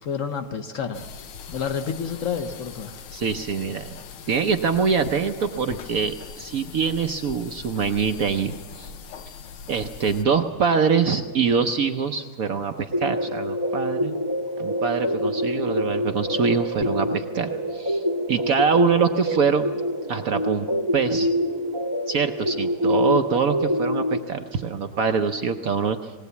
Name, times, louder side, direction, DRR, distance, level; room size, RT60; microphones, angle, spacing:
voice 1, 0.0-1.1 1.5-3.0, left 6 dB, 65° left, 7 dB, 0.8 m, -29 dB
sound 1, 0.9-10.2, left 6 dB, 90° left, 1.8 m, -41 dB
voice 2, 3.1-4.0 4.3-8.9 9.7-14.2 14.6-19.7 20.1-20.7 20.9-21.3 22.1-26.1, right 5 dB, 70° right, 6 dB, 0.8 m, -24 dB
sound 2, 12.9-24.2, equal, 25° right, 0.4 m, -26 dB
19.0 x 19.0 x 8.2 m, 1.6 s
omnidirectional pair, 2.4 m